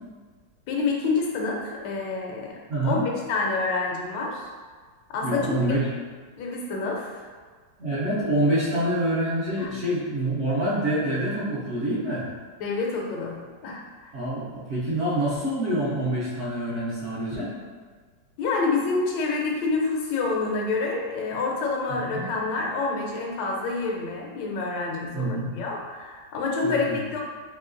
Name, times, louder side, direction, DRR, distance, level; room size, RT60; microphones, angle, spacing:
voice 1, 0.7-3.0 3.3-4.5 5.1-5.5 6.4-7.3 9.6-9.7 12.6-14.1 18.4-27.2, left 3 dB, 90° left, 0 dB, 1.3 m, -28 dB
voice 2, 2.7-3.1 5.2-5.9 7.8-12.3 14.1-17.5 21.9-22.3 25.1-25.5 26.6-27.0, right 1 dB, 65° right, -10 dB, 0.7 m, -26 dB
3.1 x 2.8 x 2.5 m, 1.5 s
omnidirectional pair, 1.9 m